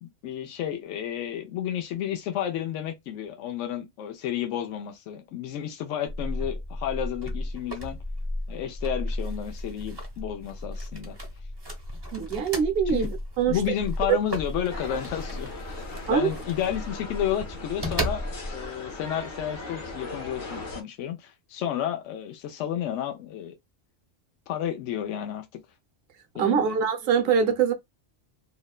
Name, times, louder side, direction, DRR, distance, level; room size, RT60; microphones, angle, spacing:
voice 1, 0.0-8.0 8.5-11.1 12.9-13.0 13.5-18.2 18.5-23.6 24.5-25.5 26.3-26.8, left 10 dB, 80° left, 0.9 m, -31 dB
sound 1, 6.1-18.7, equal, 25° right, 0.6 m, -34 dB
voice 2, 12.1-13.1 13.4-13.6 14.1-14.2 16.1-16.3 26.4-27.7, right 7 dB, 60° right, 0.8 m, -23 dB
sound 2, 14.7-20.8, left 2 dB, 50° left, 0.8 m, -39 dB
2.9 x 2.1 x 2.3 m
omnidirectional pair, 1.2 m